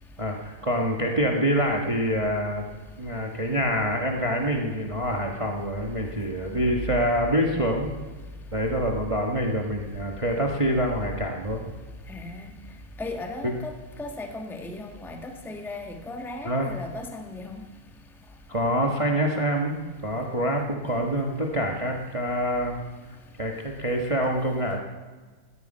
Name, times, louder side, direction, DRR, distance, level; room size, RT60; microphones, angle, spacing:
voice 1, 0.2-2.6 3.0-7.9 8.5-11.6 13.4-13.5 16.4-16.7 18.5-22.8 23.4-24.8, equal, 20° right, 1 dB, 1.3 m, -26 dB
voice 2, 12.1-12.4 13.0-13.7 14.0-17.6, left 2 dB, ahead, 4 dB, 1.2 m, -36 dB
17.5 x 13.0 x 5.6 m, 1.4 s
omnidirectional pair, 2.2 m